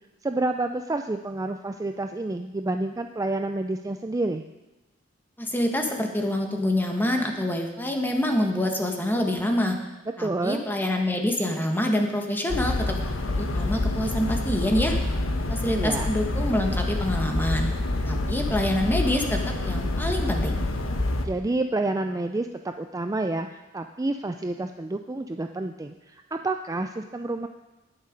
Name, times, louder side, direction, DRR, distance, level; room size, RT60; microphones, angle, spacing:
voice 1, 0.2-4.4 10.2-10.6 15.8-16.1 21.2-27.5, right 2 dB, 15° right, 6 dB, 0.4 m, -29 dB
voice 2, 5.4-9.8 10.2-13.0 13.4-15.0 15.5-17.7 18.0-20.6, left 1 dB, 10° left, 3 dB, 1.4 m, -26 dB
sound 1, 12.5-21.3, left 2 dB, 90° left, 1.2 m, -27 dB
19.0 x 6.6 x 5.2 m, 1.1 s
head